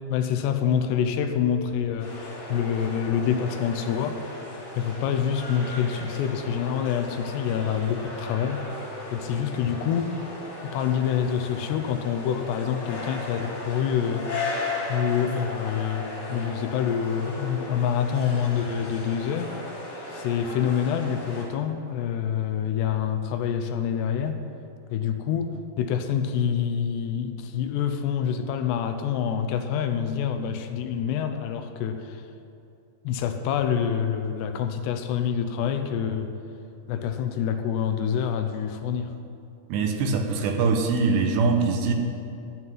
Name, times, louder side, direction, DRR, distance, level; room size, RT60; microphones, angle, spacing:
voice 1, 0.1-4.2 4.7-8.6 9.1-10.2 10.6-14.3 14.9-19.5 20.1-24.4 24.9-32.2 33.0-36.3 36.9-39.1, left 8 dB, 85° left, 7 dB, 2.9 m, -26 dB
sound 1, 2.0-21.5, left 2 dB, 55° left, 4.3 m, -36 dB
voice 2, 39.7-41.9, right 4 dB, 80° right, 4 dB, 3.1 m, -23 dB
13.5 x 5.6 x 9.4 m, 2.6 s
omnidirectional pair, 4.8 m